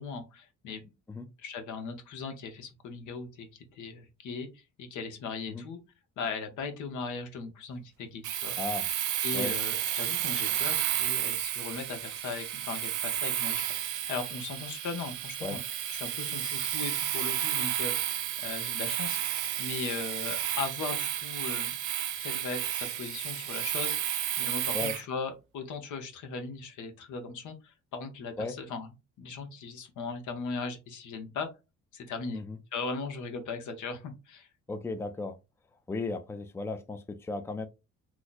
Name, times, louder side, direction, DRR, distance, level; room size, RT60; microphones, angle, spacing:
voice 1, 0.0-0.9 1.4-5.8 6.2-8.6 9.2-15.6 15.9-21.8 22.2-28.9 29.2-31.5 31.9-32.4 32.7-34.5, left 4 dB, 75° left, 1.0 m, -38 dB
Domestic sounds home sounds, 8.2-25.0, right 11 dB, 80° right, 0.6 m, -32 dB
voice 2, 8.6-8.9 9.3-9.5 15.4-15.6 24.7-25.0 28.4-28.5 32.3-32.6 34.7-35.4 35.9-37.7, left 3 dB, 10° left, 0.4 m, -35 dB
3.0 x 2.0 x 3.9 m
cardioid pair, 90°, 30 cm